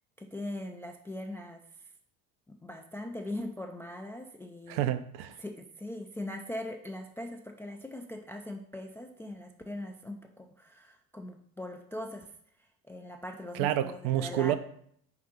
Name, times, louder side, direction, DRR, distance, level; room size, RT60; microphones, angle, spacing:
voice 1, 0.2-1.9 2.5-4.9 5.4-12.3 12.6-14.5, left 1 dB, 5° left, 0.3 m, -41 dB
voice 2, 4.7-5.4 13.5-14.5, right 12 dB, 55° right, 0.6 m, -29 dB
5.0 x 3.8 x 5.7 m
figure-of-eight pair, 55°, 46 cm